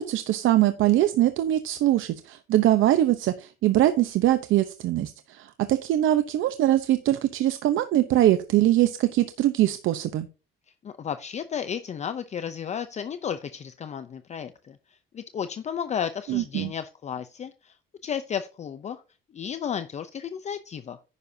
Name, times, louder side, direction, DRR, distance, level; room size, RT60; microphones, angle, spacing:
voice 1, 0.0-10.3 16.3-16.7, right 13 dB, 70° right, 10 dB, 0.9 m, -22 dB
voice 2, 10.8-17.8 18.0-19.0 19.3-21.0, left 8 dB, 35° left, 11 dB, 0.6 m, -33 dB
10.5 x 9.6 x 2.8 m, 0.32 s
cardioid pair, 150°, 21 cm